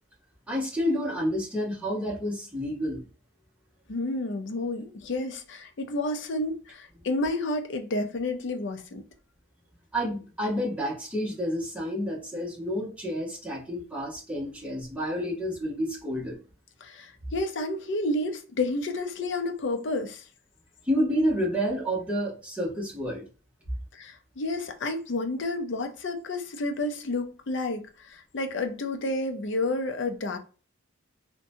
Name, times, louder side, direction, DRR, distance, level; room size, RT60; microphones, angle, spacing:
voice 1, 0.5-3.0 9.9-16.4 20.8-23.2, equal, 5° right, 0.8 m, -29 dB
voice 2, 3.9-9.0 16.8-20.2 23.9-30.4, left 2 dB, 55° left, 0.5 m, -30 dB
2.7 x 2.2 x 2.6 m
head